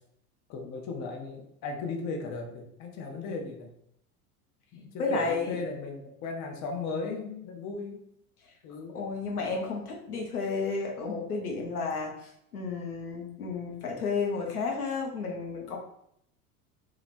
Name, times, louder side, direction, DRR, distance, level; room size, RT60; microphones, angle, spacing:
voice 1, 0.5-3.7 4.7-8.0 8.6-9.0, left 4 dB, 40° left, 2 dB, 0.8 m, -36 dB
voice 2, 5.0-5.6 8.9-15.8, left 4 dB, 80° left, 0 dB, 0.9 m, -32 dB
3.2 x 2.4 x 4.1 m, 0.73 s
figure-of-eight pair, 75°, 45 cm